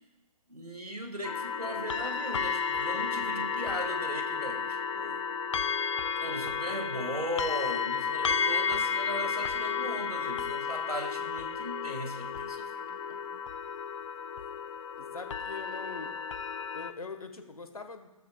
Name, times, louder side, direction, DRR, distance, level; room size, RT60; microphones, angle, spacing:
voice 1, 0.5-5.2 6.2-13.4, equal, 85° right, 6 dB, 1.8 m, -38 dB
sound 1, 1.2-16.9, left 6 dB, 55° left, 0.5 m, -32 dB
voice 2, 15.0-16.1 16.7-18.1, left 4 dB, 70° left, 7 dB, 1.3 m, -42 dB
13.5 x 13.5 x 2.3 m, 1.0 s
figure-of-eight pair, 130°, 19 cm